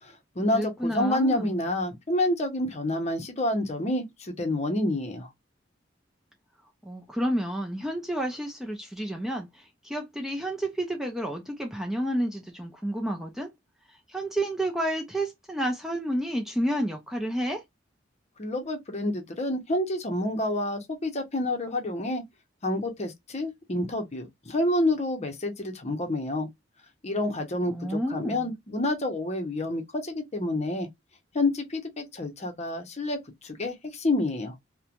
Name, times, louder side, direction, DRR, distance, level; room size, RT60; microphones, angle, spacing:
voice 1, 0.0-5.3 18.4-22.2 22.6-26.5 27.0-30.9 31.3-34.5, left 1 dB, 35° left, 0.7 m, -28 dB
voice 2, 0.5-1.6 6.8-13.5 14.1-17.6 27.7-28.5, right 1 dB, ahead, 0.4 m, -30 dB
3.0 x 2.2 x 2.4 m
head